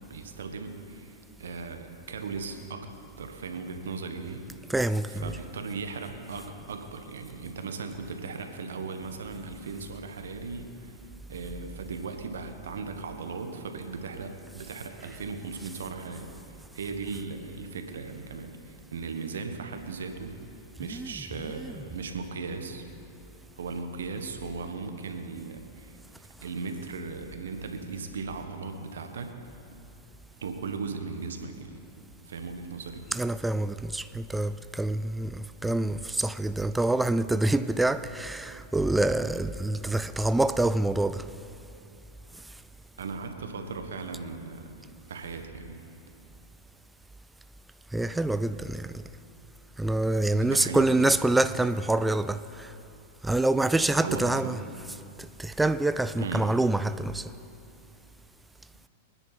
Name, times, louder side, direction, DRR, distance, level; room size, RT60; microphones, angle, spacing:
voice 1, 0.1-2.9 3.2-4.5 5.1-10.9 11.3-20.4 20.8-22.9 23.5-29.4 30.4-31.8 32.3-33.1 43.0-44.8 45.1-45.8 50.4-51.1 54.0-54.4 56.2-56.4, right 4 dB, 80° right, 1.4 m, -37 dB
voice 2, 4.7-5.3 20.9-21.1 21.6-21.7 33.1-41.2 47.9-49.0 49.8-52.7 53.2-54.6 55.2-57.3, right 2 dB, 5° right, 0.3 m, -26 dB
23.0 x 10.0 x 4.2 m
hypercardioid pair, 115°, 0 cm